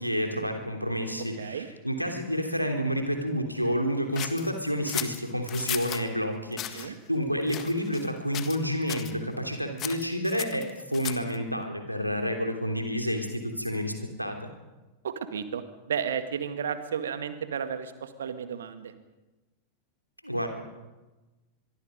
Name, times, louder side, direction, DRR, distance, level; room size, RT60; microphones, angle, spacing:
voice 1, 0.0-14.5 20.2-20.5, equal, 90° left, 4 dB, 3.2 m, -29 dB
sound 1, 4.1-6.0 6.5-6.9 7.5-8.1 8.3-8.6 8.9-9.1 9.8-11.4, left 12 dB, 35° left, 1.6 m, -36 dB
voice 2, 15.0-18.9, right 7 dB, 65° right, 10 dB, 1.9 m, -33 dB
24.0 x 24.0 x 5.2 m, 1.1 s
figure-of-eight pair, 90°, 0 cm